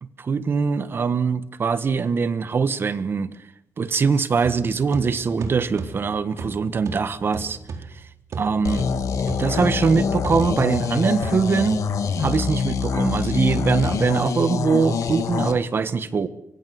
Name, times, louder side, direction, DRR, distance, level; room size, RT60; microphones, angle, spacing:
voice 1, 0.0-3.3 3.8-7.6 8.4-8.9 9.4-11.8 12.2-16.3, right 5 dB, 40° right, 1.4 m, -22 dB
sound 1, 4.4-12.2, right 4 dB, 70° right, 4.4 m, -37 dB
sound 2, 8.6-15.5, left 5 dB, 80° left, 2.4 m, -25 dB
25.0 x 23.0 x 8.0 m
wide cardioid pair, 155°, 6 cm